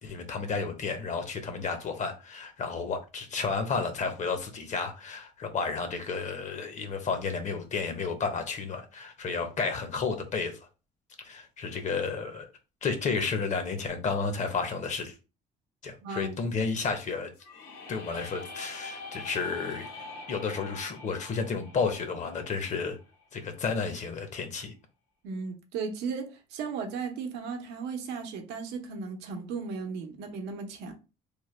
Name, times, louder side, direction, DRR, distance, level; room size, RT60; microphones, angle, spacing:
voice 1, 0.0-10.6 11.2-12.5 12.8-15.1 15.8-17.3 17.9-19.9 20.3-23.0 23.3-24.7, left 5 dB, 45° left, 0.8 m, -32 dB
voice 2, 16.0-16.3 25.2-30.9, right 5 dB, 90° right, 0.7 m, -36 dB
sound 1, 17.4-23.2, left 3 dB, 85° left, 1.0 m, -44 dB
3.2 x 2.1 x 3.1 m
cardioid pair, 110°, 17 cm